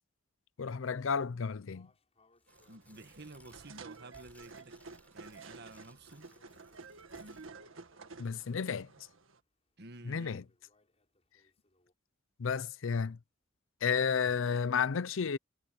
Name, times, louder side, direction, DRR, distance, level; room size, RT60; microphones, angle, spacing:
voice 1, 0.6-1.9 8.2-8.9 10.1-10.4 12.4-13.2 13.8-15.4, left 6 dB, 75° left, 0.5 m, -32 dB
sound 1, 1.3-11.9, left 2 dB, 30° left, 7.5 m, -73 dB
Tearing, 2.4-7.5, left 1 dB, 10° left, 5.7 m, -64 dB
sound 2, 2.5-9.4, right 4 dB, 80° right, 1.8 m, -52 dB
voice 2, 2.7-4.8 5.1-6.3 9.8-10.5, right 2 dB, 55° right, 1.7 m, -51 dB
head